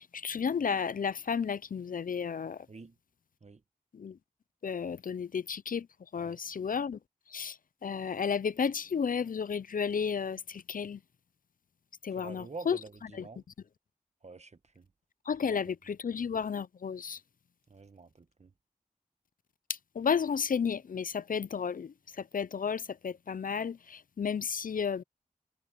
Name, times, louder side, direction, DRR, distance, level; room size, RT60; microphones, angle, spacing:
voice 1, 0.0-2.7 3.9-4.2 4.6-5.9 6.1-7.0 7.3-11.0 12.0-12.8 13.1-13.3 15.3-17.2 19.7-25.0, left 6 dB, 70° left, 0.5 m, -33 dB
voice 2, 12.2-13.4 14.2-14.9 17.7-18.5, right 3 dB, 50° right, 1.2 m, -47 dB
wide cardioid pair, 60°, 15 cm